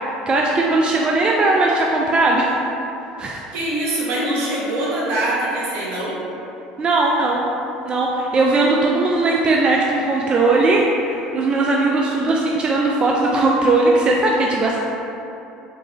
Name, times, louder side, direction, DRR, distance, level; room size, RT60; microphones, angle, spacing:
voice 1, 0.3-2.6 3.2-3.4 6.8-7.4 7.8-14.8, right 2 dB, 30° right, -2 dB, 0.4 m, -18 dB
voice 2, 3.5-6.2, right 1 dB, 70° right, -6 dB, 1.1 m, -23 dB
4.5 x 2.7 x 3.0 m, 2.9 s
hypercardioid pair, 80°, 3 cm